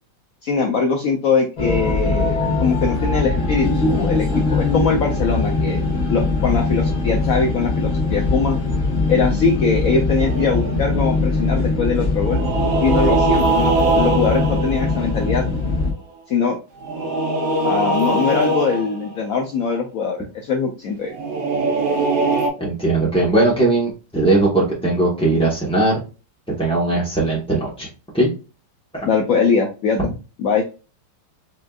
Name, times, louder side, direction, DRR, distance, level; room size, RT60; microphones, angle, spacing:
voice 1, 0.4-5.8 6.1-8.6 9.1-12.4 12.8-15.4 16.3-16.6 17.6-21.1 29.0-30.0 30.4-30.6, left 5 dB, 70° left, 2 dB, 0.8 m, -21 dB
sound 1, 1.6-15.9, left 3 dB, 50° left, 1.6 m, -21 dB
sound 2, 10.2-11.0 12.2-15.8 16.8-19.2 21.1-22.5, right 3 dB, 85° right, 1.7 m, -22 dB
voice 2, 22.6-26.0 26.6-27.9 28.1-28.3 28.9-29.1, right 2 dB, 5° left, -5 dB, 0.6 m, -19 dB
6.0 x 2.5 x 2.3 m, 0.32 s
omnidirectional pair, 2.0 m